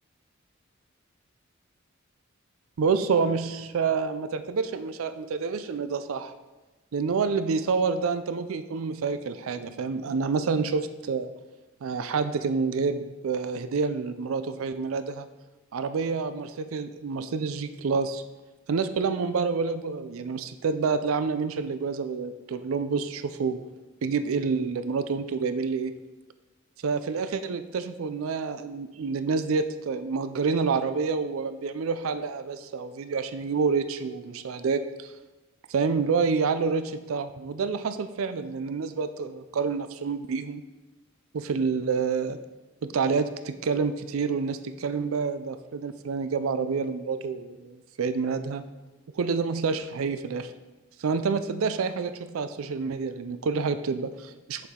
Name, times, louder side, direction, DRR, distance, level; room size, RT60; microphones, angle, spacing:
voice 1, 2.8-6.3 6.9-11.3 11.8-15.3 15.7-18.2 18.7-23.6 24.0-25.9 26.8-35.1 35.7-40.6 41.3-42.4 42.8-48.6 49.1-50.5 51.0-54.7, right 5 dB, 80° right, 11 dB, 0.4 m, -28 dB
7.9 x 7.1 x 3.7 m, 1.1 s
head